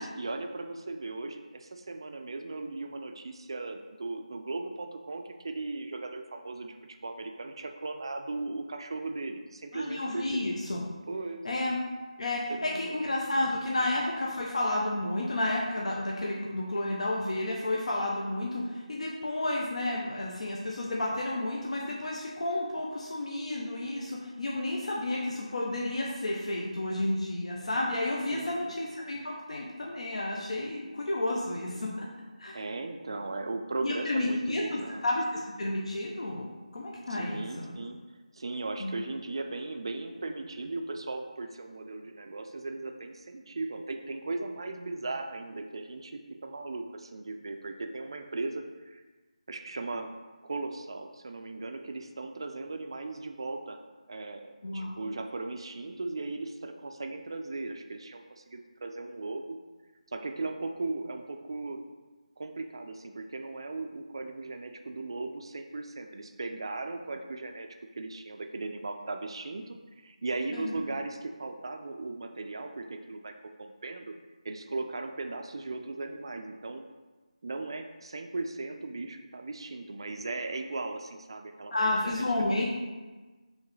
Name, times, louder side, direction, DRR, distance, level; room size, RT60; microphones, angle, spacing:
voice 1, 0.0-6.8 7.0-10.5 11.1-11.5 12.5-13.0 13.8-13.9 28.3-28.7 32.5-35.0 37.1-38.0 38.3-49.0 49.5-50.1 50.4-53.8 54.1-59.6 60.1-61.8 62.4-67.7 68.0-74.1 74.4-76.8 77.4-82.6, right 3 dB, 40° right, 5 dB, 0.3 m, -37 dB
voice 2, 9.7-10.8 11.4-11.8 12.2-32.1 32.4-32.6 33.8-37.8 38.8-39.0 54.6-55.1 70.5-70.8 81.7-82.6, left 1 dB, 60° left, -2 dB, 0.6 m, -31 dB
4.5 x 3.2 x 3.1 m, 1.3 s
figure-of-eight pair, 175°, 4 cm